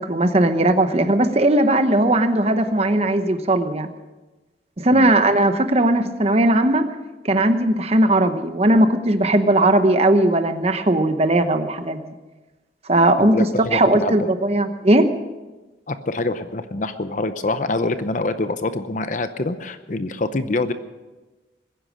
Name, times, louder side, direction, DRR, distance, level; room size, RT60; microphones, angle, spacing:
voice 1, 0.0-3.9 4.8-6.9 7.2-12.0 12.9-13.4 13.7-15.1, right 1 dB, 35° right, 9 dB, 1.0 m, -18 dB
voice 2, 13.2-14.3 15.9-20.7, left 2 dB, 40° left, 11 dB, 0.7 m, -25 dB
21.0 x 10.0 x 6.3 m, 1.2 s
head